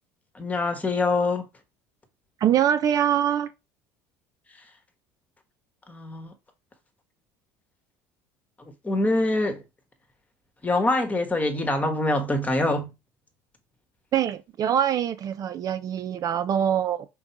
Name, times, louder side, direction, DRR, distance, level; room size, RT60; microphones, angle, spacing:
voice 1, 0.3-1.5 5.9-6.3 8.6-9.6 10.6-12.9, left 2 dB, 15° left, 1.2 m, -25 dB
voice 2, 2.4-3.5 14.1-17.1, right 9 dB, 45° right, 0.4 m, -24 dB
3.8 x 2.7 x 4.5 m
supercardioid pair, 90°, 9 cm